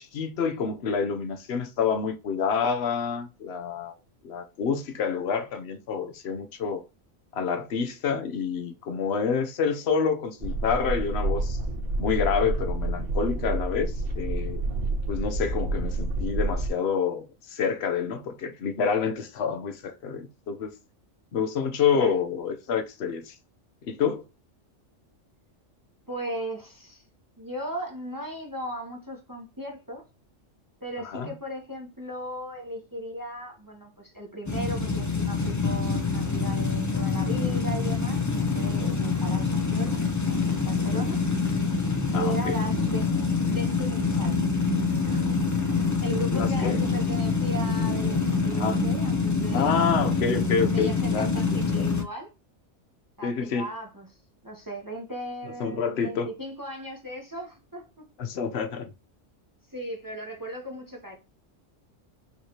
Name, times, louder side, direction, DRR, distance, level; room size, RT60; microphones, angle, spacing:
voice 1, 0.0-4.0 4.2-6.8 7.3-11.6 12.0-14.6 15.1-20.7 21.3-23.4 23.8-24.2 31.1-31.3 42.1-42.6 46.3-46.8 48.5-48.8 49.5-51.8 53.2-53.7 55.6-56.3 58.2-58.9, left 6 dB, 60° left, 0.9 m, -28 dB
sound 1, 10.4-16.7, right 2 dB, 50° right, 1.4 m, -28 dB
voice 2, 26.1-27.0 27.4-30.0 30.8-41.2 42.1-43.1 43.5-44.4 45.0-45.3 46.0-50.0 50.7-52.3 53.2-54.1 54.4-58.0 59.7-61.2, right 1 dB, 20° right, 0.9 m, -37 dB
sound 2, 34.5-52.0, left 4 dB, 25° left, 0.4 m, -26 dB
5.5 x 3.2 x 2.8 m
omnidirectional pair, 1.3 m